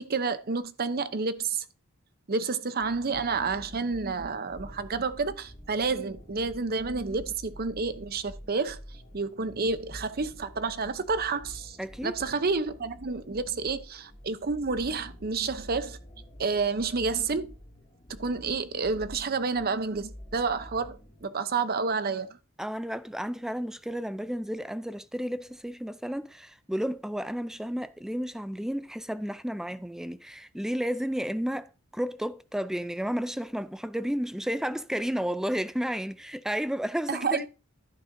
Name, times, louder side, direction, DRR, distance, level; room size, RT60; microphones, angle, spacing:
voice 1, 0.0-1.6 2.3-8.8 9.1-11.8 12.0-16.0 16.4-17.5 18.1-22.3 37.1-37.5, right 4 dB, 45° right, 0.7 m, -29 dB
sound 1, 2.8-21.2, equal, 30° left, 2.4 m, -48 dB
voice 2, 11.8-12.1 22.6-37.5, equal, ahead, 0.4 m, -32 dB
11.5 x 9.6 x 2.7 m
head